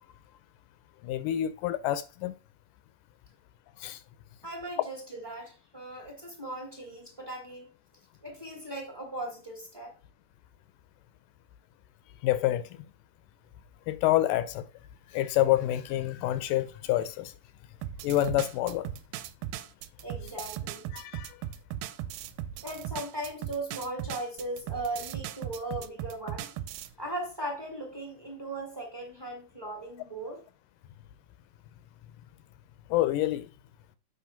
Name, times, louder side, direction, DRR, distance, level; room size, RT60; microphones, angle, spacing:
voice 1, 1.0-2.3 3.8-4.0 12.2-12.7 13.9-14.7 15.1-17.3 18.0-18.9 20.9-21.4 32.9-33.5, left 13 dB, 80° left, 2.0 m, -27 dB
voice 2, 4.4-7.7 8.2-9.9 20.0-20.9 22.6-26.5 27.0-30.4, right 1 dB, 15° right, 0.7 m, -38 dB
sound 1, 17.8-26.9, right 12 dB, 85° right, 2.2 m, -38 dB
8.0 x 3.2 x 5.7 m
omnidirectional pair, 3.9 m